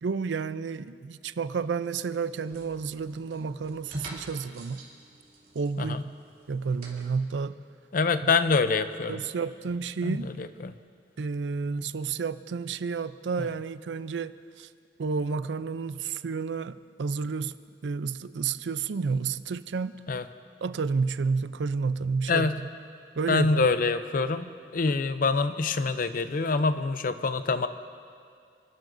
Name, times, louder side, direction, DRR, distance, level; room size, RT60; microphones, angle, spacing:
voice 1, 0.0-4.8 5.5-6.0 6.5-7.6 8.2-8.3 9.1-10.3 11.2-14.7 15.0-17.6 17.8-20.0 20.6-22.7 23.2-23.7, right 5 dB, 90° right, 14 dB, 0.5 m, -31 dB
sound 1, 1.8-7.1, right 1 dB, 55° right, 2.9 m, -47 dB
voice 2, 7.9-9.2 10.0-10.8 20.1-20.2 22.3-22.6 23.3-27.7, left 4 dB, 50° left, 11 dB, 0.5 m, -26 dB
29.5 x 12.0 x 2.6 m, 2.3 s
head